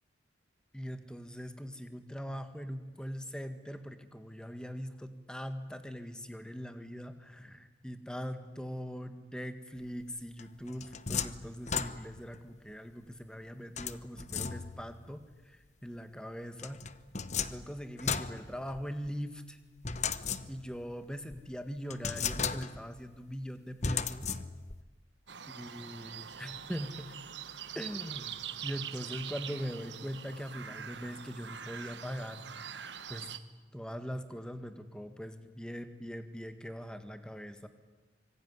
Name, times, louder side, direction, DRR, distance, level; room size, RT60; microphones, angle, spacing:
voice 1, 0.7-16.8 17.4-19.6 20.5-24.3 25.6-27.1 27.7-32.4 33.1-33.3 33.7-37.7, equal, 5° left, 9 dB, 1.7 m, -41 dB
sound 1, 10.4-12.4 13.8-15.0 16.6-19.1 19.8-20.8 21.3-21.4 21.9-23.0 23.8-24.8, left 6 dB, 40° left, 1.0 m, -36 dB
sound 2, 25.3-33.4, right 8 dB, 70° right, 1.4 m, -44 dB
25.5 x 23.5 x 9.8 m, 1.3 s
head